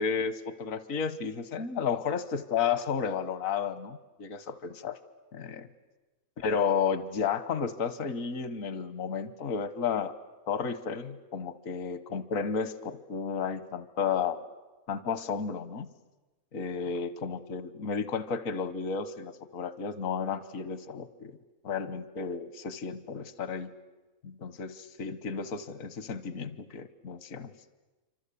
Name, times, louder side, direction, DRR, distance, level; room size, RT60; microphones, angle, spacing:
voice 1, 0.0-5.0 5.3-5.7 6.4-10.1 10.5-14.4 14.9-15.9 16.5-21.4 21.6-23.7 24.2-27.5, left 6 dB, 75° left, 14 dB, 1.5 m, -32 dB
27.5 x 25.5 x 8.4 m, 1.1 s
omnidirectional pair, 1.4 m